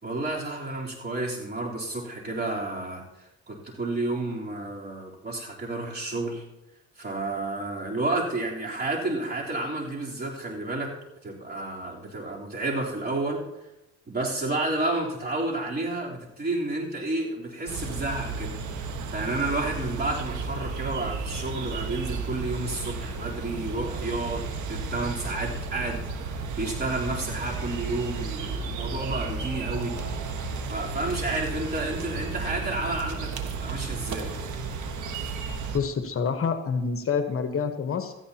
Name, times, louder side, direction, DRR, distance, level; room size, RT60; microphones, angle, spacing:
voice 1, 0.0-3.0 3.5-6.4 7.0-10.9 11.2-13.4 14.1-18.6 19.1-29.9 30.7-34.3, right 2 dB, 35° right, -3 dB, 3.7 m, -31 dB
sound 1, 17.7-35.8, right 4 dB, 75° right, 1.5 m, -33 dB
voice 2, 35.7-38.1, left 5 dB, 45° left, 7 dB, 1.2 m, -27 dB
17.0 x 13.5 x 2.9 m, 0.95 s
cardioid pair, 90°, 30 cm